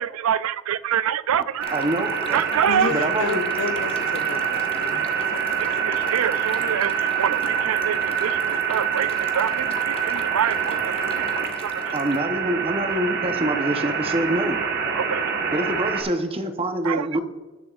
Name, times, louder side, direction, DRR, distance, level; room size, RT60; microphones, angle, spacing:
voice 1, 0.0-1.7 2.3-2.9 5.6-11.3 11.6-12.0 14.9-15.3 16.8-17.2, right 9 dB, 85° right, 17 dB, 0.4 m, -26 dB
sound 1, 1.6-12.2, left 4 dB, 25° left, 0.8 m, -41 dB
sound 2, 1.6-16.0, right 7 dB, 50° right, 1.3 m, -25 dB
voice 2, 1.7-2.4 2.9-3.4 11.9-14.6 15.5-17.2, right 1 dB, 25° right, 7 dB, 0.8 m, -25 dB
voice 3, 2.7-6.1, left 4 dB, 80° left, 9 dB, 0.8 m, -32 dB
17.0 x 6.9 x 2.4 m, 1.3 s
head